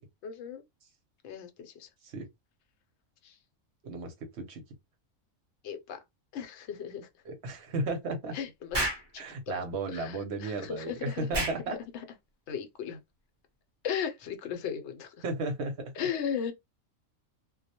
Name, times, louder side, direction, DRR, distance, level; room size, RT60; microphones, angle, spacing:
voice 1, 0.2-0.6 1.2-1.9 3.2-3.3 5.6-6.0 6.3-7.1 8.3-8.8 9.1-9.5 9.9-11.3 11.7-12.0 12.5-13.0 13.8-15.1 16.0-16.5, left 8 dB, 65° left, 0.8 m, -36 dB
voice 2, 3.8-4.6 7.2-8.4 9.2-11.8 15.2-16.1, right 2 dB, 60° right, 0.9 m, -34 dB
Explosion, 8.7-9.1 11.3-11.6, right 1 dB, 30° right, 0.5 m, -30 dB
2.2 x 2.0 x 2.7 m
omnidirectional pair, 1.4 m